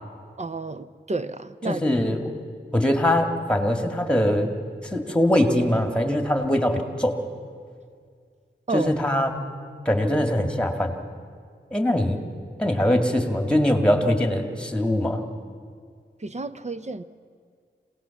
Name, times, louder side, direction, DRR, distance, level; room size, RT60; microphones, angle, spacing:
voice 1, 0.4-1.8 8.7-9.0 16.2-17.0, right 3 dB, 40° right, 11 dB, 0.7 m, -30 dB
voice 2, 1.7-2.3 2.7-4.5 4.9-7.2 8.7-9.4 9.9-10.9 11.7-12.2 12.6-15.2, left 1 dB, 5° left, 4 dB, 2.2 m, -22 dB
26.0 x 18.0 x 7.2 m, 2.1 s
wide cardioid pair, 70°, 19 cm